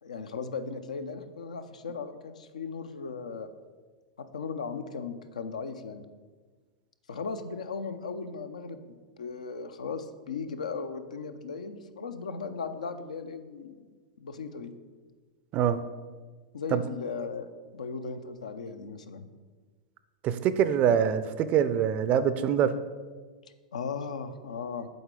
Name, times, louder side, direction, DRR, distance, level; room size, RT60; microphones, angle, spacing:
voice 1, 0.0-3.5 4.2-6.0 7.1-13.8 14.2-14.7 16.5-19.3 23.7-24.9, left 5 dB, 80° left, 10 dB, 0.5 m, -37 dB
voice 2, 20.2-22.7, right 9 dB, 40° right, 13 dB, 0.4 m, -24 dB
7.7 x 4.0 x 3.7 m, 1.4 s
hypercardioid pair, 100°, 4 cm